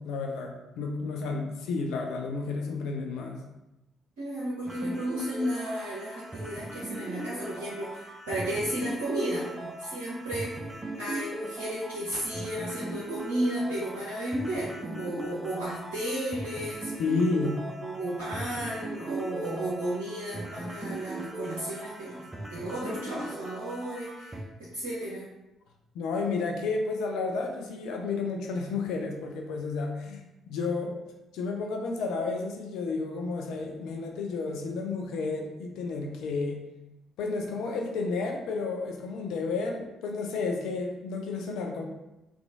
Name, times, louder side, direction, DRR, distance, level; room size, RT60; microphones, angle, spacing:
voice 1, 0.0-3.4 17.0-17.5 25.9-30.9 31.3-36.6 37.2-41.8, left 4 dB, 60° left, 1 dB, 0.4 m, -31 dB
voice 2, 4.2-16.9 17.4-17.5 17.8-25.3, right 1 dB, 65° right, -7 dB, 0.6 m, -33 dB
sound 1, 4.7-24.4, right 1 dB, 20° right, 0.5 m, -39 dB
3.0 x 2.4 x 2.5 m, 0.95 s
figure-of-eight pair, 45°, 0 cm